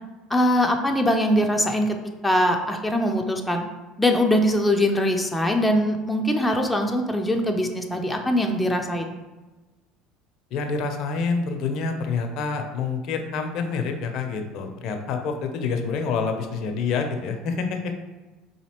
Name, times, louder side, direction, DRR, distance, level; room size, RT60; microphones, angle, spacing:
voice 1, 0.3-2.0 2.2-3.6 4.0-9.1, equal, 10° left, 3 dB, 0.5 m, -22 dB
voice 2, 10.5-17.9, left 5 dB, 60° left, 5 dB, 0.5 m, -27 dB
4.0 x 2.7 x 2.9 m, 1.2 s
hypercardioid pair, 75°, 0 cm